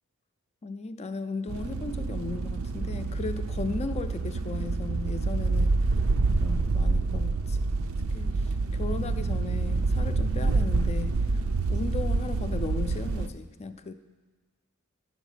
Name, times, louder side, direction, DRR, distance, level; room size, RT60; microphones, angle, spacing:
voice 1, 0.6-5.8 6.4-7.6 8.1-11.4 11.7-13.9, left 3 dB, 30° left, 10 dB, 0.4 m, -36 dB
sound 1, 1.5-13.3, right 3 dB, 70° right, 0.5 m, -27 dB
11.0 x 6.2 x 5.0 m, 1.3 s
head